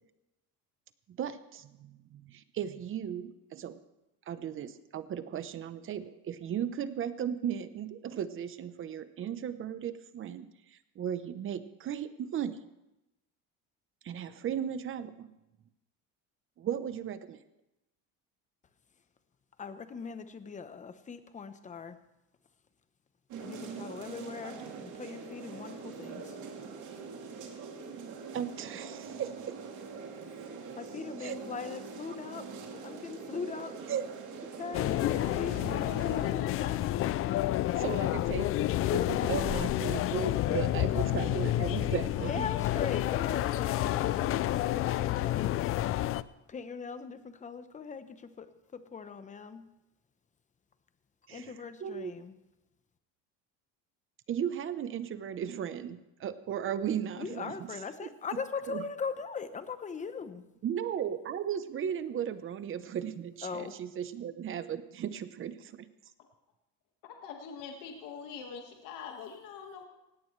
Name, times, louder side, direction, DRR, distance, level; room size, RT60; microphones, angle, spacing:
voice 1, 1.1-3.8 4.3-12.6 14.0-15.3 16.6-17.4 28.3-29.6 31.2-31.4 33.9-34.1 37.8-42.5 51.3-51.5 51.8-52.1 54.3-57.7 58.7-58.8 60.6-65.8, right 9 dB, 35° right, 12 dB, 0.9 m, -36 dB
voice 2, 19.6-22.0 23.4-26.4 30.7-33.9 34.5-37.5 39.0-39.7 42.2-46.0 46.5-49.6 51.3-52.4 57.1-60.4 63.4-63.8, left 5 dB, 20° left, 11 dB, 0.9 m, -41 dB
sound 1, 23.3-36.3, right 5 dB, 60° right, 3.0 m, -43 dB
sound 2, 34.7-46.2, left 14 dB, 40° left, 0.4 m, -29 dB
voice 3, 67.1-69.9, left 6 dB, 65° left, 2 dB, 1.8 m, -44 dB
18.0 x 17.0 x 3.3 m, 0.94 s
cardioid pair, 140°, 34 cm